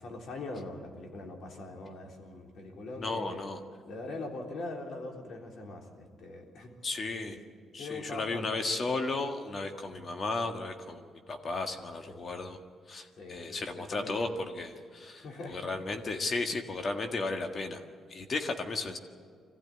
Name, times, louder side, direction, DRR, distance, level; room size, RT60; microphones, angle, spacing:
voice 1, 0.0-3.5 3.8-6.8 7.3-7.4 7.8-8.5 13.2-14.2 15.2-15.6, left 2 dB, 65° left, 2 dB, 3.6 m, -42 dB
voice 2, 3.0-3.6 6.8-7.4 7.7-12.6 12.9-17.8 18.1-19.0, left 3 dB, 45° left, 6 dB, 1.7 m, -34 dB
23.0 x 15.0 x 9.9 m, 2.1 s
cardioid pair, 90°, 0 cm